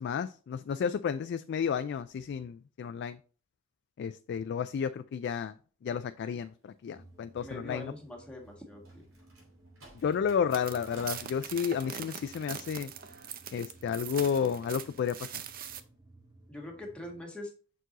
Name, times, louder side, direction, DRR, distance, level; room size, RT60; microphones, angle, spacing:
voice 1, 0.0-3.2 4.0-5.5 5.8-7.9 10.0-12.9 13.5-15.4, left 7 dB, 55° left, 11 dB, 0.3 m, -32 dB
sound 1, 6.9-17.2, right 2 dB, 20° right, 1.0 m, -58 dB
voice 2, 7.4-9.0 16.5-17.5, left 1 dB, 5° left, 0 dB, 1.5 m, -43 dB
sound 2, 8.4-11.4, right 1 dB, 85° right, 3.4 m, -55 dB
sound 3, 10.5-15.8, right 9 dB, 45° right, 0.5 m, -42 dB
6.1 x 4.6 x 4.0 m, 0.40 s
head